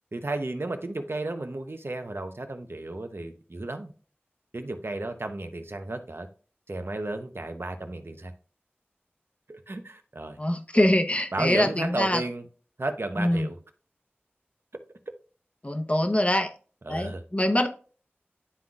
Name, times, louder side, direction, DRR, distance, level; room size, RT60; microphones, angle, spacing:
voice 1, 0.1-3.9 4.5-6.3 6.7-8.3 9.5-10.4 11.3-12.5 12.8-13.6 16.8-17.2, right 2 dB, 65° right, 0.8 m, -33 dB
voice 2, 10.4-12.2 13.2-13.5 15.6-16.5 16.9-17.7, left 1 dB, 30° left, 0.9 m, -24 dB
11.0 x 3.9 x 2.4 m
wide cardioid pair, 40°, 4 cm